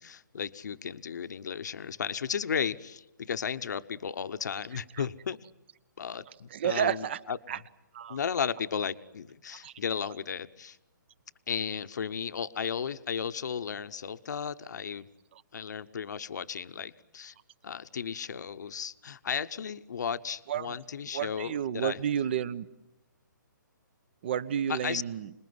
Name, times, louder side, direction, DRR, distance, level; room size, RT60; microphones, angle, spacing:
voice 1, 0.0-5.4 6.0-7.4 8.1-10.8 11.5-15.1 15.5-17.3 17.6-22.0 24.7-25.0, left 7 dB, 60° left, 11 dB, 1.0 m, -34 dB
voice 2, 6.5-7.2 7.5-7.6 7.9-8.2 9.6-9.7 20.5-20.8 21.1-22.7 24.2-25.3, right 9 dB, 35° right, 19 dB, 0.9 m, -31 dB
27.5 x 20.5 x 9.7 m, 0.95 s
hypercardioid pair, 170°, 11 cm